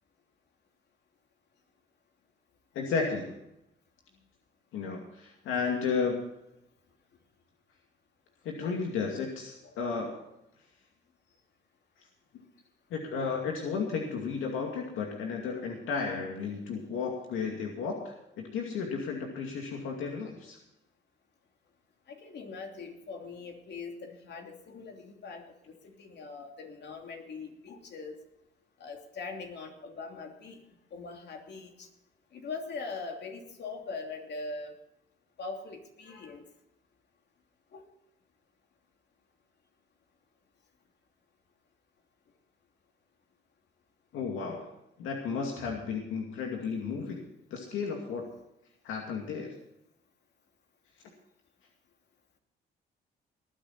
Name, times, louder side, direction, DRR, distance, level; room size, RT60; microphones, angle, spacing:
voice 1, 2.7-3.4 4.7-6.2 8.4-10.3 12.9-20.6 44.1-47.2 47.5-48.3 48.8-49.5, left 5 dB, 90° left, 1 dB, 2.4 m, -33 dB
voice 2, 22.1-28.2 28.8-30.6 30.9-31.9 32.3-34.7 35.4-36.4 37.7-37.8 45.6-45.7, left 4 dB, 60° left, 3 dB, 2.9 m, -42 dB
19.5 x 10.0 x 4.3 m, 0.82 s
cardioid pair, 90°, 20 cm